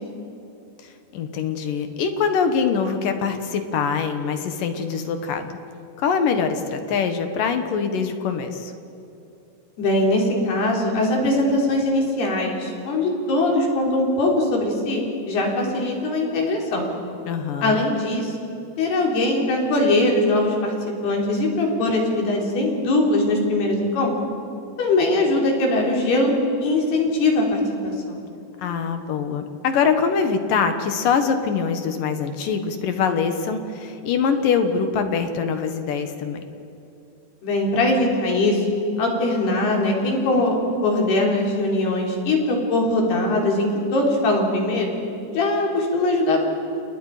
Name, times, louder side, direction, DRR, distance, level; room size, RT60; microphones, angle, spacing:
voice 1, 0.8-5.5 6.0-8.7 17.3-17.9 28.6-36.4, left 6 dB, 65° left, 7 dB, 2.8 m, -23 dB
voice 2, 9.8-16.9 17.6-18.3 18.8-24.1 24.8-26.3 26.6-28.2 37.4-38.6 39.0-40.6 40.8-44.9 45.3-46.4, left 2 dB, 85° left, 0 dB, 6.0 m, -21 dB
29.5 x 29.0 x 5.0 m, 2.8 s
omnidirectional pair, 4.5 m